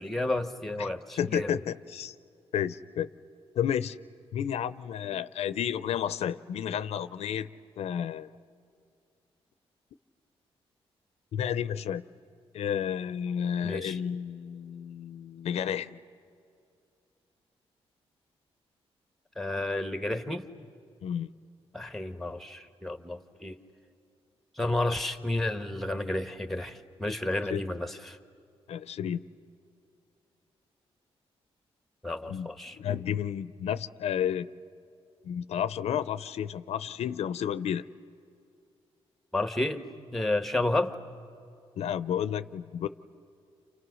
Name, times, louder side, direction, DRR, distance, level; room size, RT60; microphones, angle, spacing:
voice 1, 0.0-1.6 13.6-14.0 19.4-20.4 21.7-23.6 24.6-28.2 32.0-32.8 39.3-39.8 40.1-41.0, left 2 dB, ahead, 9 dB, 1.2 m, -31 dB
voice 2, 1.2-2.1 2.5-3.1 3.6-4.0 4.3-7.5 7.8-8.3 11.3-12.0 12.5-16.0 21.0-21.3 27.5-27.6 28.7-29.2 32.3-34.5 35.2-37.9 41.8-42.9, left 9 dB, 90° left, 14 dB, 0.6 m, -31 dB
30.0 x 28.5 x 6.3 m, 2.5 s
wide cardioid pair, 130°, 11 cm